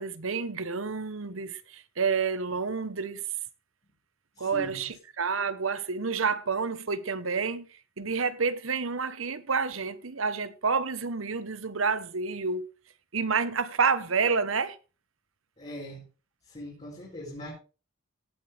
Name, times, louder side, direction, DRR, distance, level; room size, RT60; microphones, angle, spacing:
voice 1, 0.0-3.2 4.4-7.7 8.0-12.7 13.1-14.8, right 5 dB, 75° right, 1.1 m, -29 dB
voice 2, 4.4-4.9 15.6-16.0 16.5-17.5, equal, 30° left, 5.3 m, -41 dB
18.0 x 8.7 x 3.4 m
head